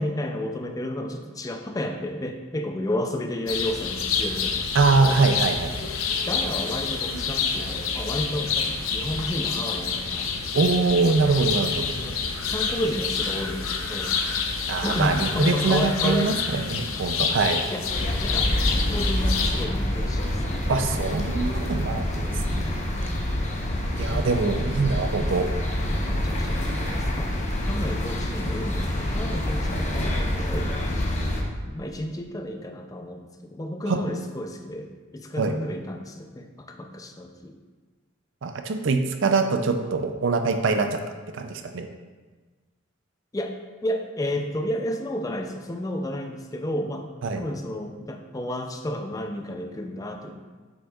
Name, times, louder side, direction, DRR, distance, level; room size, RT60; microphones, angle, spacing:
voice 1, 0.0-5.2 6.3-10.3 11.7-14.1 14.8-16.4 17.7-17.8 18.2-20.9 22.2-22.4 24.0-24.6 25.4-25.6 26.1-27.3 27.6-31.0 31.7-37.6 43.3-43.6 43.8-47.1 47.3-50.3, left 1 dB, 15° left, 4 dB, 0.4 m, -32 dB
sound 1, 3.5-19.7, left 5 dB, 85° left, 0.7 m, -28 dB
voice 2, 4.7-5.7 10.5-11.7 14.7-17.6 20.7-22.6 23.0-23.1 24.0-25.5 33.9-34.0 35.4-35.5 38.4-41.0 41.3-41.9 47.2-47.4, right 4 dB, 65° right, 6 dB, 0.5 m, -23 dB
sound 2, 17.9-31.4, left 1 dB, 35° left, 0.9 m, -26 dB
8.0 x 6.3 x 2.4 m, 1.3 s
head